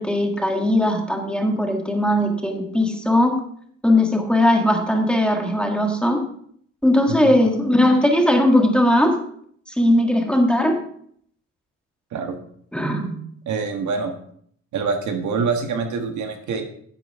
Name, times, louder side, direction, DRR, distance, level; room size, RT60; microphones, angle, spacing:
voice 1, 0.0-3.4 3.8-6.2 6.8-9.2 9.8-10.8 12.7-13.1, left 1 dB, 5° left, 2 dB, 1.8 m, -19 dB
voice 2, 13.5-14.2 14.7-16.6, right 5 dB, 75° right, 4 dB, 1.6 m, -25 dB
10.5 x 7.7 x 3.5 m, 0.63 s
cardioid pair, 90°, 30 cm